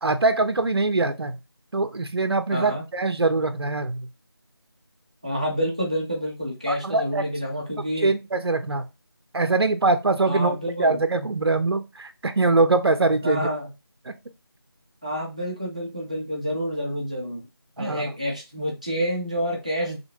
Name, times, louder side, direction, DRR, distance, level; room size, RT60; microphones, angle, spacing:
voice 1, 0.0-1.4 1.7-4.1 6.7-7.2 8.0-8.9 9.3-13.5 14.1-14.2 17.8-18.1, right 3 dB, 75° right, 9 dB, 0.5 m, -23 dB
voice 2, 2.5-2.8 5.2-8.1 10.2-11.0 13.2-13.7 15.0-17.5 17.8-20.0, equal, 15° right, -2 dB, 0.5 m, -28 dB
3.4 x 2.8 x 2.7 m, 0.25 s
figure-of-eight pair, 170°, 13 cm